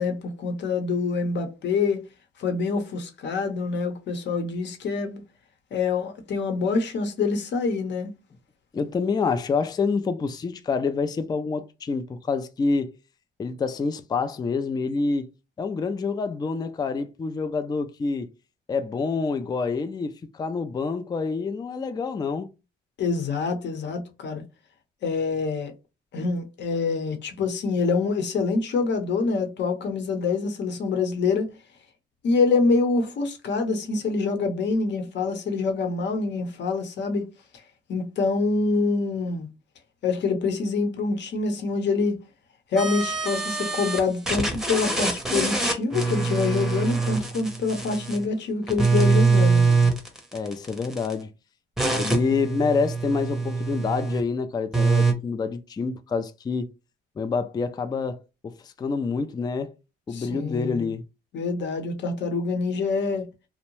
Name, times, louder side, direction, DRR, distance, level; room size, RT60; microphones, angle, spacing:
voice 1, 0.0-2.0 2.4-5.2 5.7-8.1 23.0-24.4 25.0-25.7 26.1-31.5 32.2-37.3 37.9-39.5 40.0-42.2 42.7-49.9 60.1-60.9 61.3-63.3, left 4 dB, 65° left, 0.8 m, -26 dB
voice 2, 8.7-13.0 13.4-15.3 15.6-18.3 18.7-22.5 50.3-51.3 52.0-56.7 57.2-59.8 60.1-61.1, left 4 dB, 20° left, 0.3 m, -27 dB
sound 1, 42.8-44.0 44.3-48.3 48.7-51.1 51.8-54.2 54.7-55.1, right 4 dB, ahead, 0.7 m, -24 dB
2.6 x 2.1 x 3.0 m
cardioid pair, 90°, 20 cm